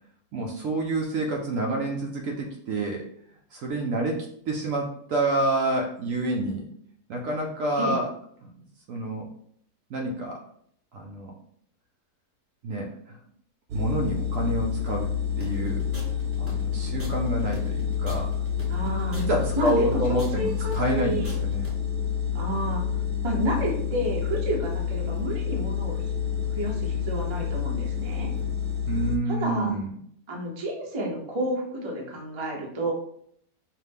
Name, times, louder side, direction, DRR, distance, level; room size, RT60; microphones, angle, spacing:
voice 1, 0.3-3.0 3.5-6.7 7.1-8.1 8.4-8.5 8.9-9.3 9.9-10.4 10.9-11.3 12.6-13.2 13.7-15.1 15.4-15.8 16.4-18.3 19.1-21.6 28.9-29.9, right 2 dB, 65° right, 0 dB, 0.9 m, -28 dB
sound 1, 13.7-29.2, left 8 dB, 85° right, 0.6 m, -28 dB
sound 2, 15.4-21.7, right 1 dB, 10° right, 1.0 m, -43 dB
voice 2, 18.7-19.2 19.6-21.3 22.3-22.8 23.2-26.0 26.5-28.3 29.3-29.8 30.3-32.9, right 1 dB, 30° right, -1 dB, 0.5 m, -30 dB
5.5 x 2.1 x 3.4 m, 0.66 s
omnidirectional pair, 1.8 m